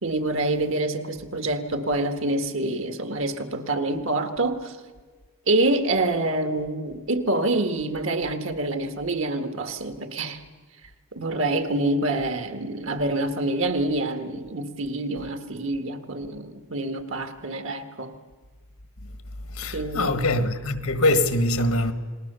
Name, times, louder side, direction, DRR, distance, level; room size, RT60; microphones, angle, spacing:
voice 1, 0.0-4.8 5.5-10.4 11.1-18.1 19.7-20.2, right 2 dB, 60° right, 1.7 m, -26 dB
voice 2, 19.5-21.9, left 1 dB, 75° left, 1.7 m, -23 dB
29.5 x 20.0 x 6.9 m
head